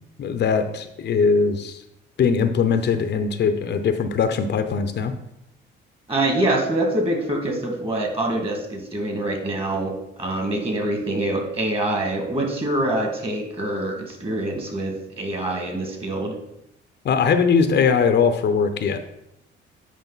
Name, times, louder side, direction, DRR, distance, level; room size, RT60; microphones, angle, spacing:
voice 1, 0.2-1.8 2.2-5.1 17.0-19.0, left 5 dB, 60° left, 9 dB, 0.7 m, -20 dB
voice 2, 6.1-16.4, right 1 dB, 30° right, 3 dB, 2.0 m, -25 dB
9.2 x 4.9 x 4.0 m, 0.82 s
cardioid pair, 90°, 20 cm